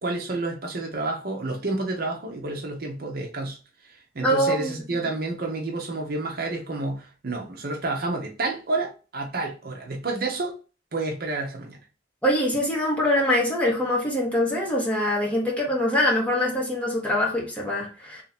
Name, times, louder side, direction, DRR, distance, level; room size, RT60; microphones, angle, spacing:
voice 1, 0.0-3.6 4.1-10.5 10.9-11.8, right 2 dB, 55° right, 1 dB, 0.8 m, -29 dB
voice 2, 4.2-5.0 12.2-18.2, left 1 dB, 5° left, -4 dB, 1.3 m, -24 dB
3.2 x 2.7 x 4.2 m, 0.34 s
head